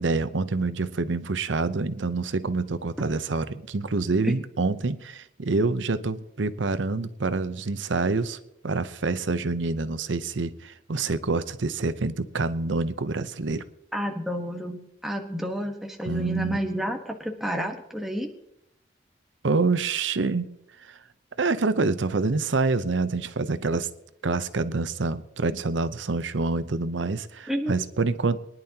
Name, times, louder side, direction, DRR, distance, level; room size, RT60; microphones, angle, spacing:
voice 1, 0.0-8.4 8.6-13.6 16.1-16.6 19.4-20.5 20.8-21.0 21.4-23.9 24.2-28.4, right 3 dB, 90° right, 13 dB, 0.8 m, -26 dB
voice 2, 13.9-18.3 27.5-27.8, equal, ahead, 1 dB, 1.2 m, -30 dB
23.0 x 10.5 x 2.9 m, 0.78 s
head